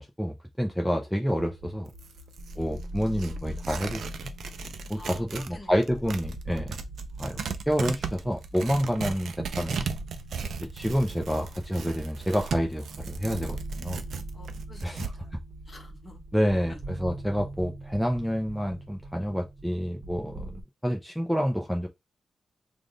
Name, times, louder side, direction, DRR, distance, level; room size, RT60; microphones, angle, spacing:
voice 1, 0.0-1.9 2.6-4.0 4.9-6.8 7.2-7.4 7.7-9.8 10.6-14.0 14.8-15.1 16.3-20.5 20.8-21.9, equal, ahead, 0.6 m, -28 dB
sound 1, 1.2-20.6, right 1 dB, 50° right, 1.1 m, -42 dB
Tearing, 1.9-5.5 5.8-15.1, right 6 dB, 85° right, 0.5 m, -37 dB
voice 2, 5.0-5.8 14.3-15.3 15.6-16.2 16.7-16.8, left 2 dB, 30° left, 1.1 m, -49 dB
3.4 x 2.5 x 3.8 m
wide cardioid pair, 105°, 0 cm